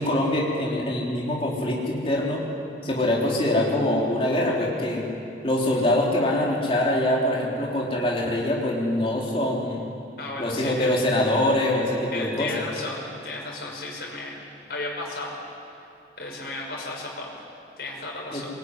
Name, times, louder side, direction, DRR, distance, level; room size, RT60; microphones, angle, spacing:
voice 1, 0.0-2.4 2.8-5.1 5.4-9.8 10.4-12.5 18.3-18.4, left 1 dB, 30° left, -4 dB, 3.7 m, -24 dB
voice 2, 10.2-10.9 12.1-14.3 14.7-15.4 16.2-17.3 17.8-18.5, left 2 dB, 60° left, -2 dB, 6.1 m, -34 dB
22.5 x 20.5 x 9.8 m, 2.7 s
head